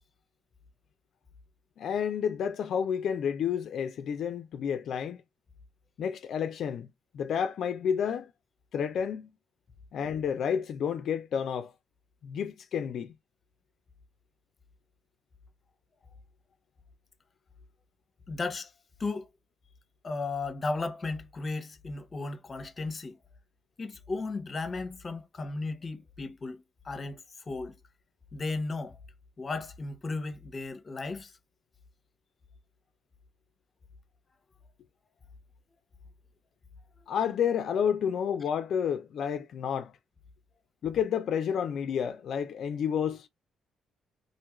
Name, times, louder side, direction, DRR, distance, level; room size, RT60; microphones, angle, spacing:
voice 1, 1.8-5.2 6.0-6.9 7.1-8.3 8.7-9.3 9.9-11.7 12.2-13.1 37.1-39.9 40.8-43.3, left 8 dB, 65° left, 0.3 m, -30 dB
voice 2, 18.3-18.7 19.0-19.3 20.0-23.2 23.8-27.7 28.3-29.0 29.4-31.3, left 3 dB, 30° left, 0.6 m, -35 dB
2.5 x 2.3 x 2.9 m
cardioid pair, 90°, 0 cm